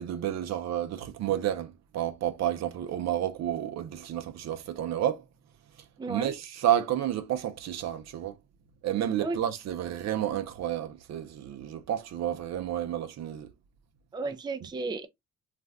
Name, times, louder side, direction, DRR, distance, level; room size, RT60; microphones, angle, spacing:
voice 1, 0.0-5.2 6.1-8.4 8.8-13.5, right 11 dB, 60° right, 0.6 m, -30 dB
voice 2, 6.0-6.3 9.2-9.4 14.1-15.1, right 3 dB, 15° right, 0.4 m, -33 dB
2.5 x 2.1 x 3.4 m
cardioid pair, 90°, 30 cm